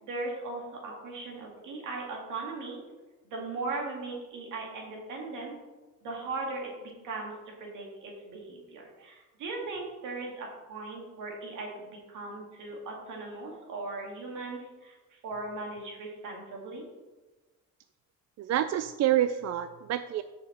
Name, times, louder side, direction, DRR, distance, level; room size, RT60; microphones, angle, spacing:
voice 1, 0.0-2.8 3.3-5.6 6.0-16.9, right 3 dB, 85° right, 0 dB, 2.3 m, -38 dB
voice 2, 18.4-20.2, right 11 dB, 60° right, 11 dB, 0.4 m, -27 dB
6.5 x 5.2 x 6.6 m, 1.2 s
cardioid pair, 90°, 30 cm